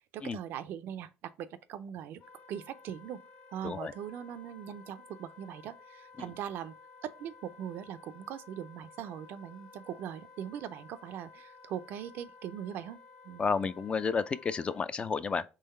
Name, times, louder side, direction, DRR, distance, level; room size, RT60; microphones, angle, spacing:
voice 1, 0.1-2.2 2.5-3.2 3.5-6.7 7.0-13.0 13.2-13.4, right 9 dB, 65° right, 0.4 m, -41 dB
Wind instrument woodwind instrument, 2.2-14.9, left 4 dB, 55° left, 1.2 m, -55 dB
voice 2, 13.4-15.4, left 5 dB, 30° left, 0.3 m, -31 dB
3.8 x 3.1 x 4.2 m
cardioid pair, 100°, 4 cm